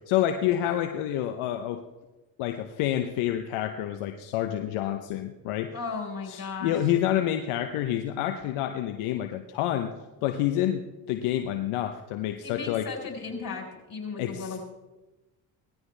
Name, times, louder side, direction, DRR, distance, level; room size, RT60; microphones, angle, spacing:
voice 1, 0.1-1.8 2.4-5.8 6.3-9.9 10.2-12.9 14.2-14.6, left 11 dB, 80° left, 6 dB, 0.9 m, -28 dB
voice 2, 5.7-6.7 12.4-14.6, left 4 dB, 45° left, 1 dB, 4.5 m, -35 dB
18.5 x 14.0 x 3.3 m, 1.1 s
supercardioid pair, 60°, 49 cm